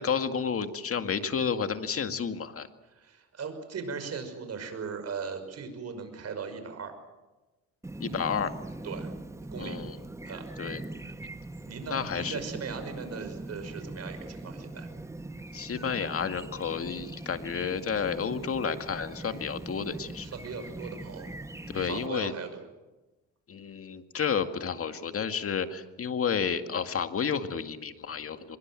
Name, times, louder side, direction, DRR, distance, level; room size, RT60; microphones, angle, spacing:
voice 1, 0.0-2.7 8.0-8.5 9.6-10.0 10.6-10.8 11.9-12.4 15.5-20.3 21.7-22.3 23.5-28.6, left 6 dB, 50° left, 8 dB, 2.1 m, -31 dB
voice 2, 2.9-7.0 8.8-9.1 9.5-9.8 10.2-10.5 11.7-14.9 20.2-21.3 21.7-22.6, right 5 dB, 55° right, 8 dB, 5.7 m, -38 dB
Chirp tweet, 7.8-22.1, right 2 dB, 10° right, 1.2 m, -41 dB
24.5 x 22.0 x 7.7 m, 1.1 s
cardioid pair, 90°, 30 cm